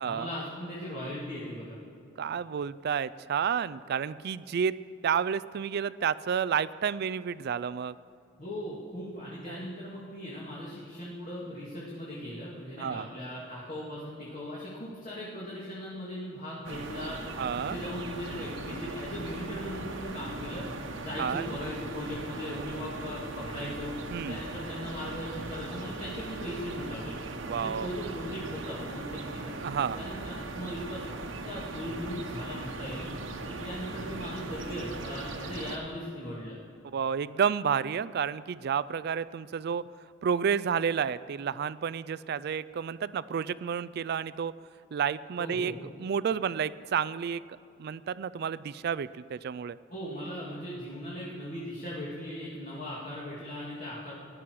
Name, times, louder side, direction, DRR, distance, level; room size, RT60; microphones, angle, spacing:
voice 1, 0.0-1.8 8.4-17.2 17.6-20.6 21.0-23.9 24.3-27.2 27.5-29.5 29.9-31.1 31.4-33.1 33.5-36.6 45.4-45.7 49.9-54.1, equal, 40° left, -6 dB, 2.4 m, -38 dB
voice 2, 2.2-4.8 5.0-8.0 9.5-9.6 12.8-13.1 17.4-17.8 21.2-21.6 24.1-24.4 27.4-27.9 29.6-30.0 36.9-39.8 40.2-44.5 44.9-45.7 46.0-47.4 47.8-49.8, right 7 dB, 55° right, 17 dB, 0.4 m, -30 dB
sound 1, 16.6-35.8, right 2 dB, 80° right, 1.2 m, -39 dB
17.5 x 11.0 x 4.7 m, 2.6 s
head